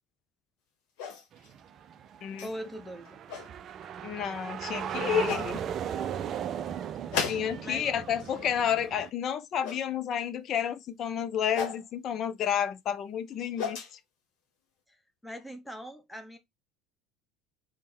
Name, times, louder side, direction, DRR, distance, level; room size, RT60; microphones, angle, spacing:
sound 1, 1.0-1.5 2.4-2.5 3.0-3.5 4.5-4.6 5.2-5.5 7.1-7.8 8.1-8.5 9.6-9.8 11.5-11.8 13.2-13.9, left 6 dB, 60° left, 1.0 m, -35 dB
sound 2, 1.3-9.1, right 9 dB, 40° right, 0.3 m, -37 dB
voice 1, 2.4-3.2 7.6-7.9 14.9-16.4, equal, 5° left, 0.8 m, -41 dB
voice 2, 4.0-5.6 7.1-13.8, left 9 dB, 45° left, 0.4 m, -30 dB
3.5 x 2.1 x 4.2 m
figure-of-eight pair, 70°, 0 cm